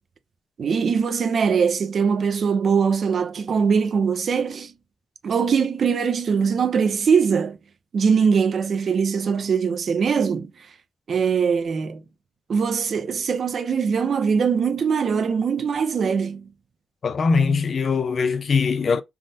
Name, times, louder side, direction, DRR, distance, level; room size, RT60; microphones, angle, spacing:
voice 1, 0.6-4.7 5.2-7.6 7.9-10.5 11.1-12.0 12.5-16.5, right 6 dB, 65° right, 0.5 m, -22 dB
voice 2, 17.0-19.0, left 5 dB, 55° left, 0.5 m, -21 dB
3.4 x 2.1 x 2.7 m
cardioid pair, 75°, 0 cm